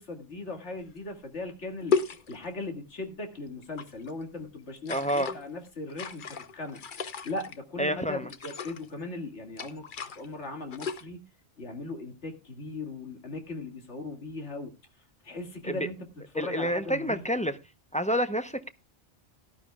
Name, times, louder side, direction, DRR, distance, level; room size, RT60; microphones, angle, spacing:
voice 1, 0.0-6.8 7.2-11.2 11.6-14.7 15.2-16.1 16.3-17.2, left 2 dB, 85° left, 2.4 m, -38 dB
sound 1, 1.0-1.1 1.9-2.7 3.6-4.1 4.8-5.4 5.9-7.6 8.3-8.9 9.6-10.3 10.6-11.1, left 5 dB, 50° left, 0.9 m, -33 dB
voice 2, 4.9-5.3 7.8-8.2 15.7-15.8 16.3-17.6 17.9-18.7, equal, 10° left, 0.6 m, -28 dB
17.5 x 12.0 x 2.3 m
omnidirectional pair, 1.2 m